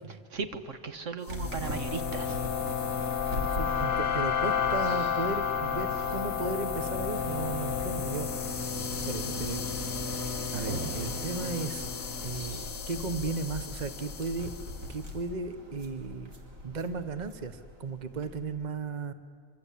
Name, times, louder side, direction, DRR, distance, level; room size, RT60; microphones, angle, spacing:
voice 1, 0.3-2.4, right 4 dB, 70° right, 8 dB, 1.6 m, -36 dB
sound 1, 1.3-14.7, left 8 dB, 65° left, 1.1 m, -33 dB
sound 2, 1.3-18.5, left 2 dB, 90° right, 3.8 m, -37 dB
voice 2, 3.5-8.8 9.1-9.6 10.5-11.9 12.2-14.5 14.9-16.3 16.6-19.1, right 4 dB, 35° right, 11 dB, 1.2 m, -35 dB
26.0 x 24.5 x 8.5 m, 2.1 s
omnidirectional pair, 1.4 m